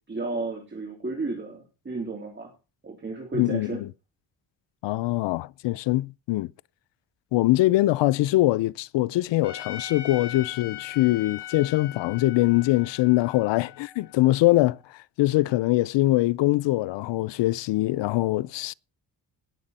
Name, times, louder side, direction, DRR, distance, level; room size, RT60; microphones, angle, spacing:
voice 1, 0.1-2.5 2.8-3.8, right 3 dB, 25° right, 3.4 m, -33 dB
voice 2, 3.3-3.9 4.8-6.5 7.3-18.7, left 17 dB, 85° left, 0.6 m, -23 dB
Trumpet, 9.4-14.6, left 11 dB, 65° left, 3.3 m, -40 dB
19.0 x 7.5 x 4.2 m
cardioid pair, 115°, 42 cm